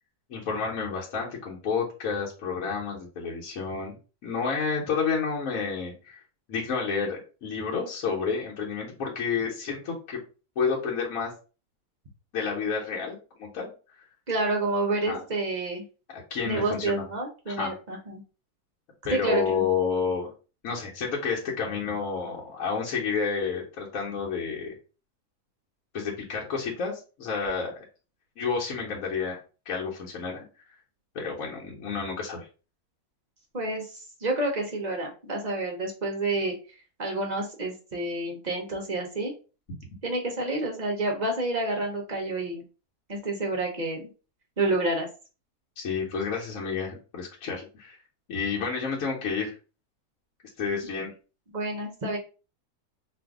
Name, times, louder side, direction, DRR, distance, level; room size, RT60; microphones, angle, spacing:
voice 1, 0.3-4.0 4.2-6.2 6.5-10.2 10.6-11.3 12.3-13.7 15.1-15.2 16.1-17.0 17.5-17.7 19.0-20.3 20.6-24.8 25.9-27.8 28.4-29.4 29.7-30.4 31.1-32.5 45.8-48.0 48.3-49.5 50.6-51.1, left 5 dB, 65° left, -3 dB, 1.1 m, -30 dB
voice 2, 14.3-15.8 16.4-18.2 19.1-19.6 33.5-33.9 34.2-36.5 37.0-39.3 40.0-42.6 43.1-44.1 44.6-45.1 51.5-52.2, right 2 dB, 50° right, 1 dB, 0.5 m, -29 dB
2.6 x 2.5 x 3.5 m, 0.34 s
omnidirectional pair, 1.7 m